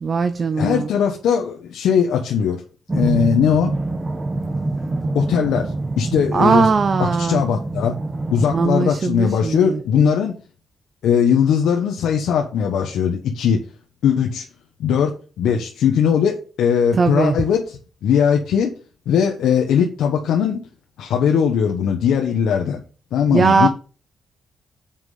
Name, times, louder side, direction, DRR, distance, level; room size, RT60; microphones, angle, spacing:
voice 1, 0.0-0.9 6.3-7.4 8.5-9.8 17.0-17.4 23.3-23.7, right 5 dB, 45° right, 0.6 m, -19 dB
voice 2, 0.6-2.6 2.9-3.8 5.1-6.7 7.0-8.0 8.3-10.3 11.0-13.6 14.0-14.4 14.8-18.7 19.1-20.6 21.0-22.8 23.1-23.7, left 7 dB, 85° left, 1.1 m, -19 dB
sound 1, 2.9-8.7, right 2 dB, 25° right, 1.1 m, -25 dB
7.4 x 4.9 x 5.6 m
cardioid pair, 80°, 0 cm